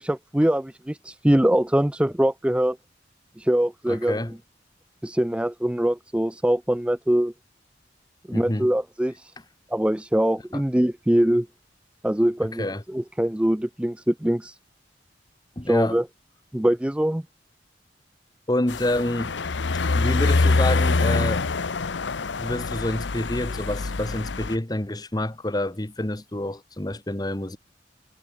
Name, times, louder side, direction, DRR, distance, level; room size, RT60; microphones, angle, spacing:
voice 1, 0.0-2.8 3.4-4.2 5.0-7.3 8.3-9.3 9.7-11.5 12.0-14.6 15.7-16.0 16.5-17.2, right 1 dB, 5° right, 0.4 m, -23 dB
voice 2, 3.9-4.3 8.3-8.7 10.5-10.6 12.4-12.8 15.6-16.0 18.5-19.3 19.9-21.5 22.4-27.6, left 1 dB, 20° left, 1.2 m, -28 dB
sound 1, 18.7-24.6, left 3 dB, 85° left, 0.8 m, -24 dB
head